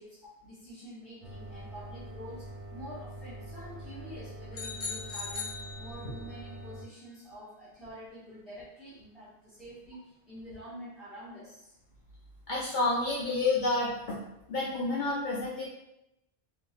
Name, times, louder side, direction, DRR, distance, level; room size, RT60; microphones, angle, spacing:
voice 1, 0.0-5.5 5.8-11.7, equal, ahead, -13 dB, 0.6 m, -47 dB
sound 1, 1.2-6.8, right 1 dB, 45° right, 0.5 m, -44 dB
sound 2, 4.5-6.4, left 5 dB, 80° left, 0.9 m, -39 dB
voice 2, 12.5-14.2 14.5-15.7, left 3 dB, 55° left, -6 dB, 0.6 m, -29 dB
3.0 x 2.6 x 2.3 m, 0.86 s
omnidirectional pair, 1.1 m